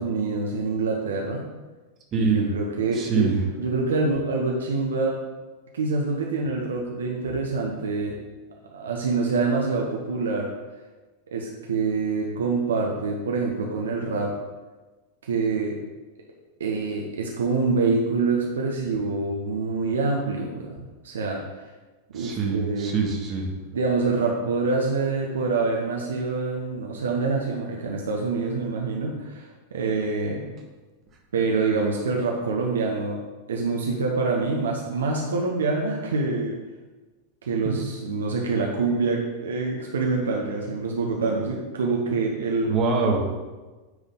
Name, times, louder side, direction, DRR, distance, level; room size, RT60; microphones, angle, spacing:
voice 1, 0.0-1.5 2.1-3.3 3.6-5.2 5.7-8.2 8.7-10.5 11.3-14.3 15.2-15.8 16.6-20.8 21.0-21.4 22.1-22.9 23.7-30.5 31.3-33.2 33.5-36.6 37.4-42.7, right 4 dB, 65° right, -1 dB, 0.7 m, -26 dB
voice 2, 2.1-2.5 2.9-3.4 22.1-23.5 42.6-43.2, right 5 dB, 30° right, -1 dB, 1.4 m, -24 dB
9.0 x 3.6 x 3.7 m, 1.2 s
figure-of-eight pair, 90°, 0 cm